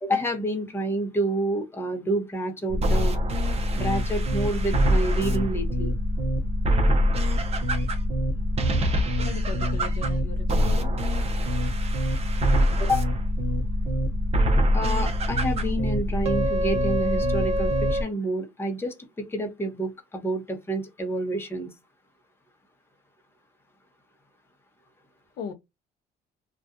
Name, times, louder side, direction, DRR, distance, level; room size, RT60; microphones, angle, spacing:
voice 1, 0.0-3.1 3.7-5.9 12.8-13.1 14.7-19.0 19.3-21.7, right 1 dB, 15° left, 0.9 m, -28 dB
sound 1, 2.7-18.0, equal, 40° right, 0.7 m, -24 dB
voice 2, 9.2-11.0 25.4-25.5, left 6 dB, 65° left, 0.6 m, -37 dB
2.6 x 2.3 x 2.4 m
cardioid pair, 110°, 17 cm